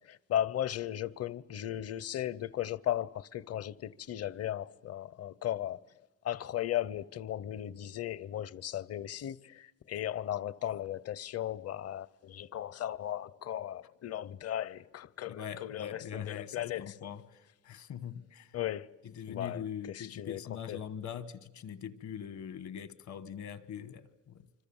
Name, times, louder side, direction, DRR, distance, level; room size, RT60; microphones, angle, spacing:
voice 1, 0.0-5.8 6.2-17.0 18.5-19.0 19.3-20.8, left 11 dB, 55° left, 0.7 m, -36 dB
voice 2, 15.3-18.5 19.2-24.4, left 8 dB, 70° left, 1.4 m, -42 dB
26.0 x 26.0 x 7.2 m
cardioid pair, 90°, 30 cm